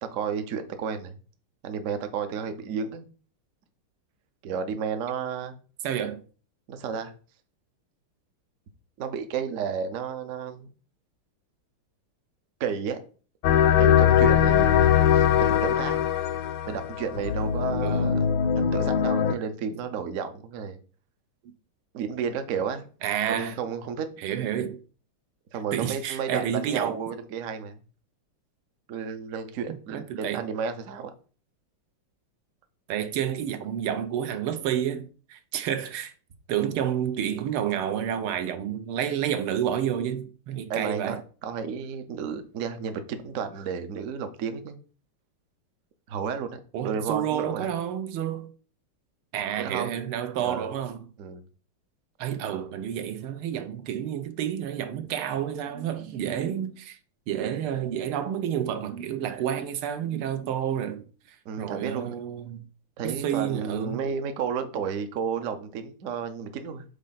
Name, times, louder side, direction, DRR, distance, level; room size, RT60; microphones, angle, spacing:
voice 1, 0.0-1.2 1.6-3.1 4.4-5.5 6.7-7.1 9.0-10.7 12.6-13.0 13.8-16.0 16.7-18.3 18.6-20.8 21.9-22.9 23.3-24.1 25.5-27.8 28.9-31.1 40.7-44.8 46.1-47.7 49.6-50.0 50.4-50.7 51.2-51.4 61.4-62.2 63.0-66.8, right 6 dB, 65° right, 0.8 m, -32 dB
voice 2, 5.8-6.2 17.8-18.2 23.0-23.6 24.2-24.8 25.7-27.0 29.9-30.4 32.9-36.1 36.5-41.2 46.7-48.5 49.3-51.1 52.2-57.0 57.3-61.0 61.6-62.7 63.0-64.0, right 9 dB, 85° right, 1.6 m, -30 dB
sound 1, 13.4-19.3, left 9 dB, 75° left, 1.3 m, -21 dB
5.2 x 4.2 x 5.6 m
omnidirectional pair, 2.4 m